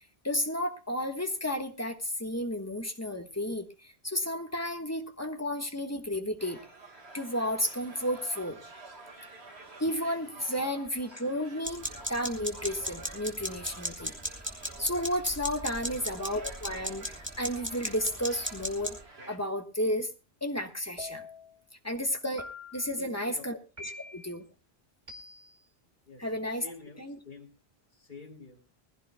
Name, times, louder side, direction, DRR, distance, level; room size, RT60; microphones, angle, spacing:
voice 1, 0.2-6.6 7.1-8.6 9.8-14.1 14.8-18.9 19.3-20.1 20.4-21.2 21.8-23.6 24.1-24.4 26.2-26.6 27.0-27.2, equal, 15° left, 5 dB, 1.3 m, -32 dB
sound 1, 6.4-19.4, right 3 dB, 85° right, 2.2 m, -49 dB
sound 2, 11.6-19.0, equal, 10° right, 2.3 m, -36 dB
sound 3, 21.0-21.6 22.4-23.0 23.8-24.3 25.1-25.6, left 2 dB, 45° right, 2.4 m, -45 dB
voice 2, 22.9-23.5 23.9-24.0 26.1-26.3 26.6-27.5 27.9-28.6, left 3 dB, 45° left, 0 dB, 3.4 m, -48 dB
20.5 x 15.5 x 2.2 m, 0.29 s
omnidirectional pair, 1.1 m